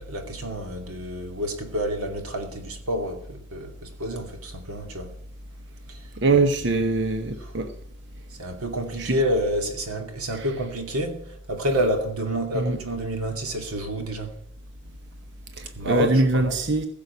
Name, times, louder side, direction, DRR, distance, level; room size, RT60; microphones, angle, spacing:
voice 1, 0.0-5.1 5.9-6.8 7.4-7.6 8.3-14.4 14.9-15.0 15.6-16.6, equal, 90° right, 2.4 m, -29 dB
voice 2, 6.2-7.7 9.0-9.2 10.3-10.5 12.5-12.8 15.6-16.9, right 3 dB, 55° right, 1.0 m, -23 dB
15.5 x 6.8 x 8.2 m
head